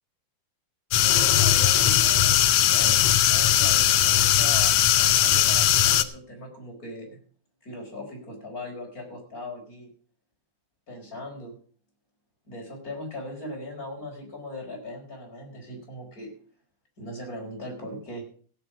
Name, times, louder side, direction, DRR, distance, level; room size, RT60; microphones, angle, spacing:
sound 1, 0.9-6.0, left 11 dB, 75° left, 1.3 m, -19 dB
voice 1, 1.0-7.2 7.6-9.9 10.9-11.5 12.4-16.3 17.0-18.2, left 1 dB, 25° left, 0 dB, 5.1 m, -39 dB
16.0 x 8.6 x 5.7 m, 0.44 s
omnidirectional pair, 3.5 m